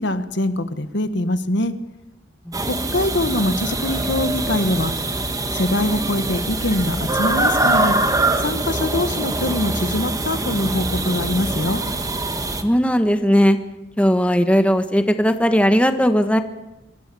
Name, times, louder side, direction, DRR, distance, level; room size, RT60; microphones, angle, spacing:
voice 1, 0.0-1.7 2.9-4.9 5.5-7.9 8.4-11.8, left 1 dB, 65° left, 10 dB, 1.5 m, -23 dB
sound 1, 2.5-12.6, right 2 dB, 20° right, 1.8 m, -23 dB
voice 2, 12.6-13.6 14.0-16.4, equal, 5° left, 8 dB, 1.3 m, -17 dB
25.5 x 22.0 x 7.0 m, 1.0 s
head